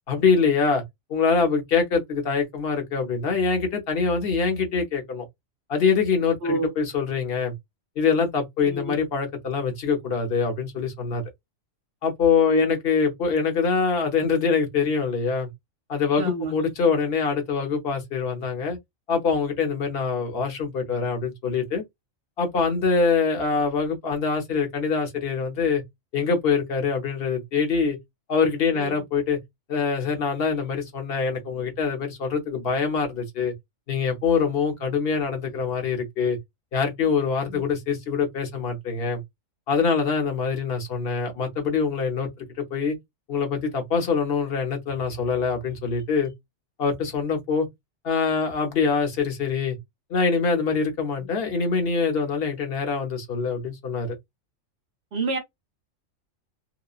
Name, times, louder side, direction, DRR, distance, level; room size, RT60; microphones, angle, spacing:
voice 1, 0.1-0.8 1.1-5.2 5.7-7.5 8.0-11.2 12.0-15.5 15.9-18.8 19.1-21.8 22.4-25.8 26.1-28.0 28.3-29.4 29.7-33.5 33.9-36.4 36.7-39.2 39.7-43.0 43.3-46.3 46.8-47.7 48.0-49.8 50.1-54.2, left 5 dB, 50° left, 1.0 m, -24 dB
voice 2, 6.4-6.7 8.6-9.0 12.5-12.8 16.2-16.5 28.7-29.0 37.5-37.6 51.2-51.3 55.1-55.4, right 2 dB, 55° right, 1.0 m, -29 dB
3.0 x 2.1 x 2.3 m
omnidirectional pair, 1.3 m